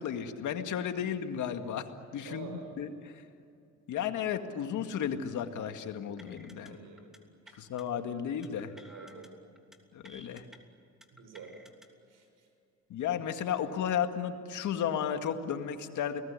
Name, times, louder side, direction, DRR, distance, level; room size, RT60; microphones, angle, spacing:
voice 1, 0.0-1.9 2.1-2.9 3.9-6.8 7.6-8.7 9.9-10.4 12.9-16.2, left 8 dB, 75° left, 7 dB, 2.1 m, -33 dB
voice 2, 2.3-2.7 3.8-3.9 6.7-7.1 7.5-7.6 8.9-9.3 11.1-11.6 12.1-12.5, right 5 dB, 80° right, 6 dB, 6.1 m, -48 dB
sound 1, 6.2-6.7 7.0-7.2 7.5-7.8 8.4-9.3 9.6-9.8 10.0-10.6 11.0-11.9, equal, ahead, 3.0 m, -54 dB
30.0 x 20.0 x 9.8 m, 2.6 s
cardioid pair, 90°, 30 cm